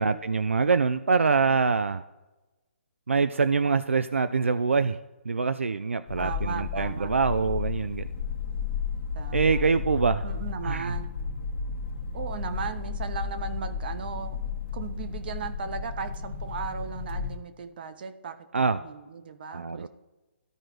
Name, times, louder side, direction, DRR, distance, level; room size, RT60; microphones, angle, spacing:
voice 1, 0.0-2.0 3.1-5.0 5.3-8.1 9.3-10.2 10.6-10.9 18.5-18.8 19.5-19.9, right 4 dB, 80° right, 11 dB, 0.4 m, -24 dB
sound 1, 6.1-17.4, left 6 dB, 55° left, 1.3 m, -33 dB
voice 2, 6.2-7.1 9.1-9.6 10.2-11.1 12.1-14.4 14.7-19.9, right 6 dB, 50° right, 9 dB, 0.8 m, -37 dB
14.5 x 4.9 x 3.0 m, 1.1 s
figure-of-eight pair, 140°, 7 cm